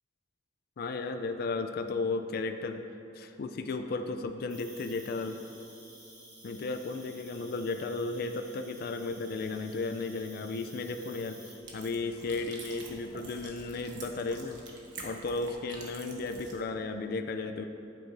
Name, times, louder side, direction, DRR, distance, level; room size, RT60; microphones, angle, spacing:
voice 1, 0.8-2.8 3.1-5.4 6.4-14.6 15.0-17.6, left 3 dB, 55° left, 7 dB, 0.4 m, -34 dB
Cricket, 4.5-11.5, right 1 dB, 25° right, 1.9 m, -53 dB
sound 1, 11.6-16.6, right 3 dB, 70° right, 1.2 m, -47 dB
11.0 x 8.9 x 2.6 m, 2.8 s
head